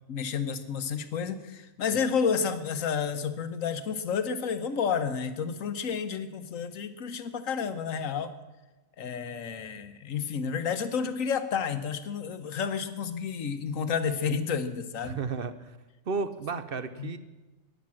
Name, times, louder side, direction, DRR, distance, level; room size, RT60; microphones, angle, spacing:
voice 1, 0.1-8.3 9.0-15.2 17.0-17.1, left 6 dB, 85° left, 11 dB, 1.4 m, -30 dB
voice 2, 15.0-15.8 16.1-17.2, right 4 dB, 50° right, 11 dB, 0.9 m, -33 dB
13.5 x 10.5 x 7.5 m, 1.1 s
omnidirectional pair, 1.3 m